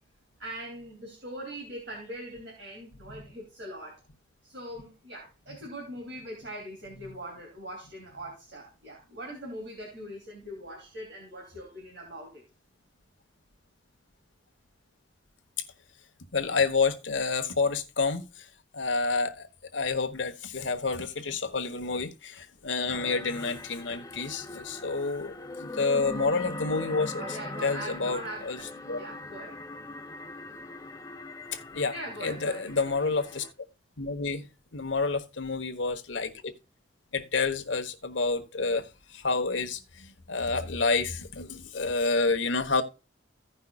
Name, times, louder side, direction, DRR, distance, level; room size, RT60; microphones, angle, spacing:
voice 1, 0.4-4.0 4.4-12.4 27.2-28.7 29.0-29.6 31.9-33.4, right 1 dB, 65° right, 3.0 m, -41 dB
voice 2, 16.3-18.5 18.7-19.5 19.7-28.6 28.9-29.0 31.7-31.9 32.2-33.4 34.0-34.5 34.7-36.5 37.1-42.8, left 4 dB, 85° left, 1.2 m, -29 dB
sound 1, 22.9-33.5, left 2 dB, 20° left, 0.5 m, -41 dB
16.0 x 5.5 x 2.3 m
head